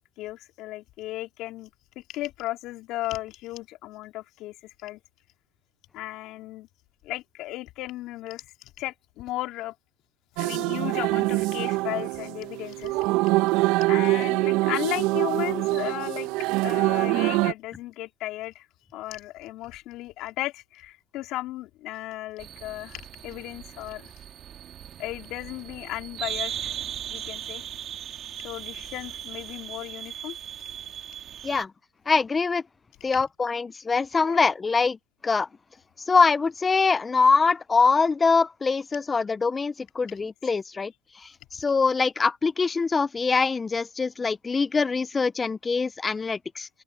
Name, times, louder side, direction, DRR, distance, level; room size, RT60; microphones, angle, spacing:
voice 1, 0.0-1.7 2.0-5.0 5.9-6.7 7.0-9.7 10.4-13.1 13.9-16.3 16.6-18.7 18.9-24.1 25.0-26.7 27.1-27.6 28.4-30.4 34.2-34.4 40.2-40.3, left 16 dB, 60° left, 3.8 m, -35 dB
sound 1, 10.4-17.5, right 20 dB, 65° right, 1.0 m, -24 dB
sound 2, 22.4-31.6, right 9 dB, 40° right, 2.1 m, -38 dB
voice 2, 32.1-32.6 33.0-35.0 35.2-35.5 36.1-46.7, left 4 dB, 20° left, 0.6 m, -23 dB
open air
supercardioid pair, 100°, 0 cm